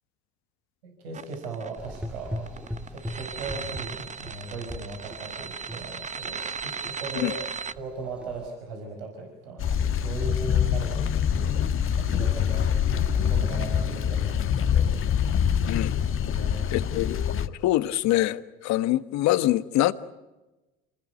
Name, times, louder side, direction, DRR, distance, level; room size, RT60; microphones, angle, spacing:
voice 1, 0.8-2.6 2.9-7.3 7.8-14.9 16.3-16.6, right 4 dB, 90° right, 5.3 m, -38 dB
sound 1, 1.1-7.7, right 6 dB, 25° right, 1.0 m, -36 dB
Gurgling / Engine, 1.8-8.5, equal, 5° right, 1.9 m, -40 dB
sound 2, 9.6-17.5, left 8 dB, 45° left, 1.5 m, -25 dB
voice 2, 16.7-17.2 17.6-19.9, left 15 dB, 60° left, 1.4 m, -24 dB
27.5 x 20.0 x 9.4 m
hypercardioid pair, 75°, 30 cm